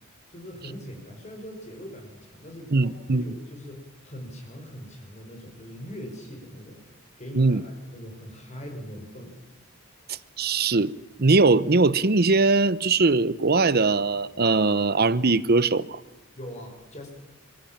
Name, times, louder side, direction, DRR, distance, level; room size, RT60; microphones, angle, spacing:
voice 1, 0.3-6.9 7.2-9.4 16.4-17.1, equal, 35° left, 5.1 m, -41 dB
voice 2, 2.7-3.2 7.3-7.6 10.4-10.9 11.2-16.0, right 3 dB, 45° right, 0.8 m, -21 dB
25.0 x 22.5 x 7.4 m
head